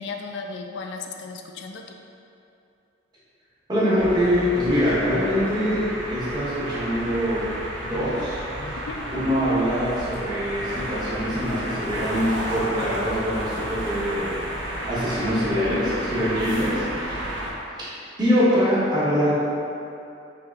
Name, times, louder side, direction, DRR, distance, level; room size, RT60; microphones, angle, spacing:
voice 1, 0.0-2.0 7.9-8.1 8.5-9.0, left 4 dB, 65° left, 3 dB, 0.3 m, -36 dB
voice 2, 3.7-7.5 7.8-8.4 8.7-8.8 9.1-14.3 14.9-17.3 17.8-17.9 18.2-19.3, equal, 20° right, -9 dB, 0.9 m, -24 dB
sound 1, 4.0-17.5, right 1 dB, 75° right, 0.6 m, -32 dB
3.4 x 2.8 x 3.4 m, 2.6 s
head